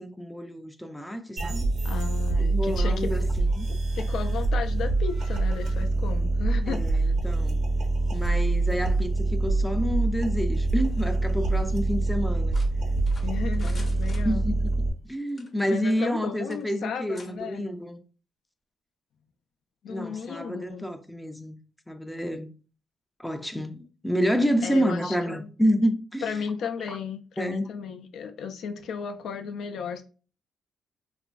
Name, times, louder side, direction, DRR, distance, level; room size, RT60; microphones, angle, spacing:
voice 1, 0.0-1.7 2.4-3.7 6.7-7.6 8.1-12.6 14.2-14.6 15.1-18.0 19.9-21.6 21.9-22.5 23.2-26.4 26.9-27.0 27.4-27.7, equal, 5° left, 0.4 m, -29 dB
sound 1, 1.4-14.9, right 2 dB, 70° right, 0.7 m, -25 dB
voice 2, 1.8-3.1 3.7-6.8 13.2-14.5 15.7-17.7 19.8-20.9 24.6-25.5 26.2-30.0, left 6 dB, 75° left, 0.3 m, -34 dB
sound 2, 12.5-14.8 15.3-16.2 16.5-16.6 17.1-17.3, left 3 dB, 35° left, 0.7 m, -48 dB
2.9 x 2.5 x 2.2 m
cardioid pair, 90°, 0 cm